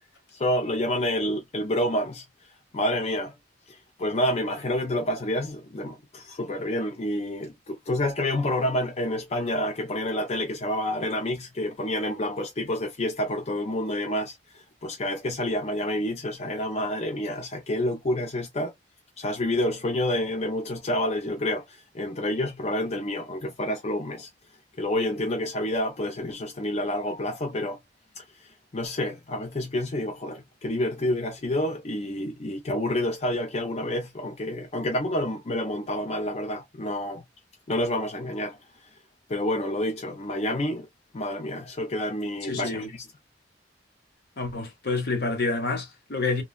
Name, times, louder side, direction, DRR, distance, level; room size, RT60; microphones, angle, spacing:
voice 1, 0.3-2.2 2.7-3.3 3.7-18.7 19.2-24.3 24.8-27.8 28.1-37.2 37.7-38.6 39.3-40.9 41.1-43.0, left 1 dB, 35° left, 0.5 m, -28 dB
voice 2, 42.4-42.9 44.4-46.4, left 3 dB, 60° left, 0.9 m, -28 dB
3.0 x 2.3 x 2.2 m
head